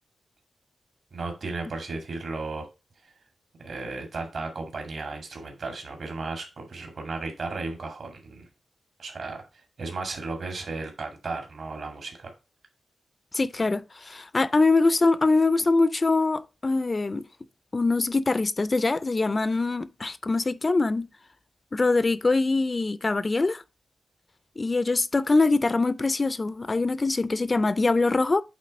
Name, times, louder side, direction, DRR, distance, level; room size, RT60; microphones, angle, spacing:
voice 1, 1.1-2.6 3.6-8.5 9.0-12.3, right 3 dB, 60° right, 2.0 m, -35 dB
voice 2, 13.3-17.2 17.7-21.1 21.7-23.6 24.6-28.4, left 3 dB, 30° left, 0.3 m, -23 dB
8.4 x 3.6 x 5.1 m
wide cardioid pair, 130°, 0 cm